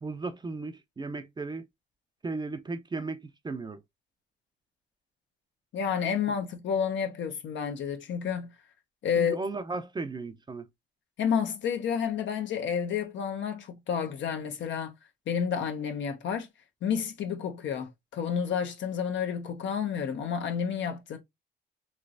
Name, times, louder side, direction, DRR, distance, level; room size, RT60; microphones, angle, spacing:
voice 1, 0.0-1.6 2.2-3.8 9.2-10.7, right 3 dB, 20° right, 0.5 m, -35 dB
voice 2, 5.7-8.5 9.0-9.4 11.2-14.9 15.3-16.5 16.8-21.2, left 7 dB, 70° left, 0.9 m, -30 dB
3.2 x 3.1 x 2.5 m
cardioid pair, 90°, 20 cm